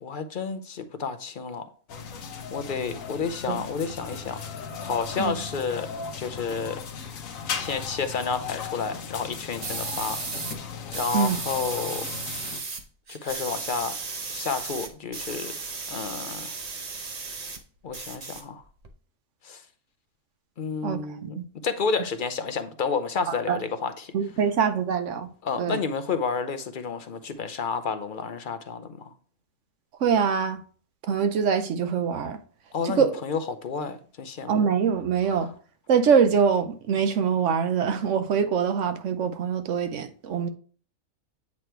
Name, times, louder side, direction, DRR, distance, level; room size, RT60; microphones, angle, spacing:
voice 1, 0.0-1.7 2.5-5.9 6.2-6.8 7.6-10.2 10.9-12.1 13.1-13.9 14.3-15.5 15.9-16.5 17.8-18.6 19.4-19.6 20.6-24.1 25.4-29.1 32.7-34.7 35.3-35.5, left 5 dB, 50° left, 0.6 m, -30 dB
sound 1, 1.9-12.6, left 6 dB, 80° left, 1.2 m, -37 dB
sound 2, 9.6-10.6 10.9-12.8 13.1-17.6 17.9-18.9, right 4 dB, 35° right, 0.7 m, -35 dB
voice 2, 20.8-21.4 23.5-23.6 24.1-25.3 25.6-25.8 30.0-30.6 31.1-32.4 32.8-33.2 34.5-35.5 35.9-40.5, right 6 dB, 70° right, 1.0 m, -24 dB
8.5 x 3.2 x 4.5 m
omnidirectional pair, 1.4 m